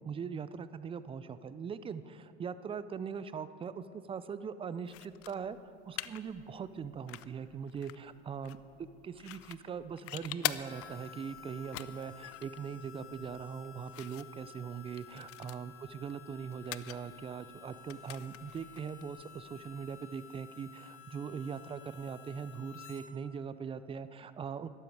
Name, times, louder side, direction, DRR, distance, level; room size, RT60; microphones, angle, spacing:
voice 1, 0.0-8.6 9.0-24.7, right 6 dB, 20° right, 14 dB, 0.3 m, -41 dB
sound 1, 4.8-20.0, left 15 dB, 45° left, 0.4 m, -46 dB
Harmonica, 10.6-23.1, left 9 dB, 90° left, 1.7 m, -53 dB
13.0 x 12.5 x 4.7 m, 2.5 s
supercardioid pair, 110°, 33 cm